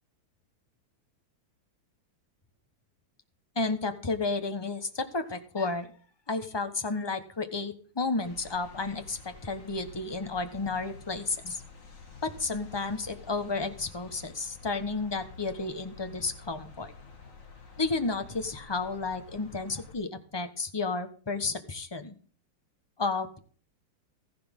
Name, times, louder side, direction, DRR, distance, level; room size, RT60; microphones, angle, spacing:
voice 1, 3.5-5.9 6.3-11.6 12.2-16.9 17.8-22.1 23.0-23.4, left 3 dB, 20° left, 8 dB, 0.7 m, -32 dB
sound 1, 8.2-19.9, left 4 dB, 40° left, 2.4 m, -49 dB
14.5 x 11.0 x 3.7 m, 0.41 s
omnidirectional pair, 2.3 m